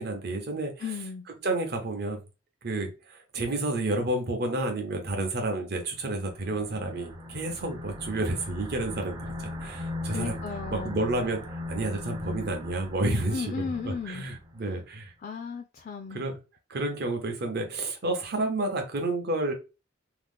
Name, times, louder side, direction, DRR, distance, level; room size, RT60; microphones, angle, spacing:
voice 1, 0.0-0.7 1.4-2.2 2.6-10.4 10.7-15.1 16.1-16.4 16.7-19.5, right 2 dB, 55° right, 0.7 m, -30 dB
voice 2, 0.8-1.3 10.1-11.0 13.3-14.2 14.6-14.8 15.2-16.2, left 5 dB, 45° left, 0.3 m, -35 dB
sound 1, 5.9-14.6, left 2 dB, 20° right, 0.4 m, -39 dB
2.8 x 2.0 x 3.4 m
head